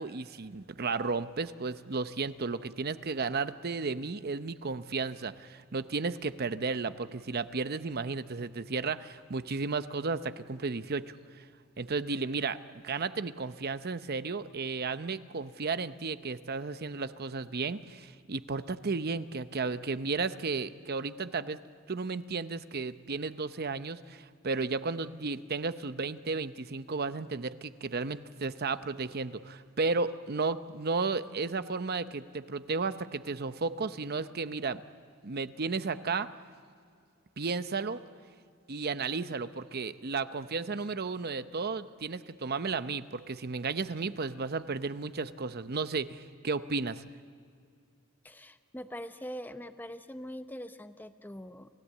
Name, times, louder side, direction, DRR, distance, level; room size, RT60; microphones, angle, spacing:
voice 1, 0.0-11.5 11.8-21.6 21.9-34.8 35.2-36.3 37.4-38.0 38.7-47.0, right 4 dB, 45° right, 12 dB, 0.7 m, -33 dB
voice 2, 48.2-51.7, equal, 10° left, 9 dB, 0.7 m, -43 dB
29.0 x 16.5 x 8.4 m, 2.2 s
head